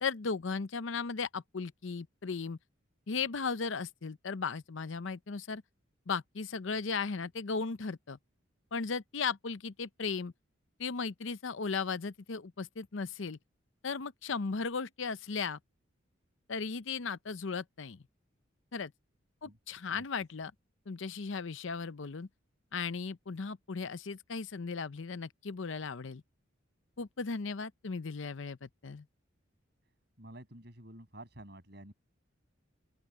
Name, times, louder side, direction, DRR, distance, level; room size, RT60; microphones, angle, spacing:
voice 1, 0.0-2.6 3.1-5.6 6.1-8.2 8.7-10.3 10.8-13.4 13.8-15.6 16.5-18.0 18.7-18.9 19.4-20.5 20.9-22.3 22.7-26.2 27.0-29.0, left 5 dB, 70° left, 0.7 m, -36 dB
voice 2, 30.2-31.9, right 1 dB, 55° right, 7.2 m, -50 dB
open air
head